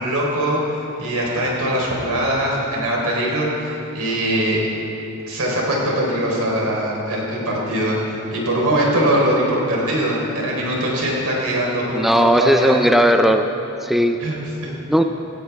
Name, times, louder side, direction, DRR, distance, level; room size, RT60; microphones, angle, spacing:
voice 1, 0.0-4.6 5.3-12.8 14.2-14.7, right 1 dB, 85° right, -3 dB, 4.0 m, -22 dB
voice 2, 11.9-13.5 13.8-14.2 14.9-15.0, equal, ahead, 6 dB, 0.4 m, -16 dB
17.5 x 16.0 x 3.5 m, 3.0 s
head